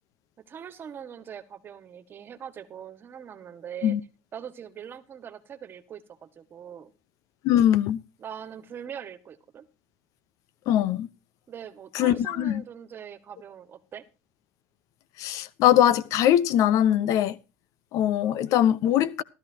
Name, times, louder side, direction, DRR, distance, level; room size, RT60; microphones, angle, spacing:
voice 1, 0.5-4.0 4.3-6.9 8.2-9.7 11.5-14.0, right 8 dB, 35° right, 1.7 m, -42 dB
voice 2, 7.4-8.0 10.7-11.1 11.9-12.6 15.2-17.4 17.9-19.2, left 11 dB, 60° left, 0.9 m, -22 dB
15.5 x 13.0 x 2.9 m
cardioid pair, 130°, 6 cm